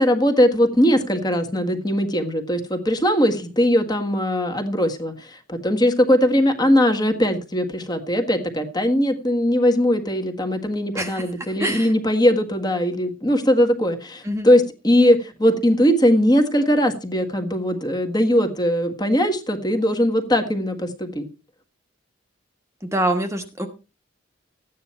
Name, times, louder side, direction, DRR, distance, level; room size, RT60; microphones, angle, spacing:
voice 1, 0.0-21.3, equal, 20° left, 6 dB, 1.7 m, -20 dB
voice 2, 10.9-11.3 11.6-11.9 14.2-14.5 22.8-23.7, right 1 dB, 15° right, 5 dB, 1.3 m, -25 dB
14.0 x 9.5 x 4.4 m, 0.32 s
head